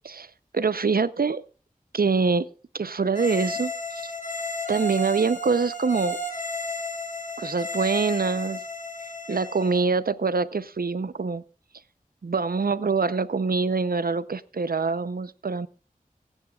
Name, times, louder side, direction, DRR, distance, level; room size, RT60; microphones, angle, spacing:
voice 1, 0.0-1.4 1.9-2.5 2.7-4.1 4.7-6.2 7.4-8.6 9.3-11.4 12.2-15.7, right 4 dB, 90° right, 15 dB, 0.7 m, -25 dB
sound 1, 3.1-9.8, left 1 dB, 55° left, 5.0 m, -33 dB
25.0 x 10.0 x 2.4 m, 0.35 s
wide cardioid pair, 60°, 15 cm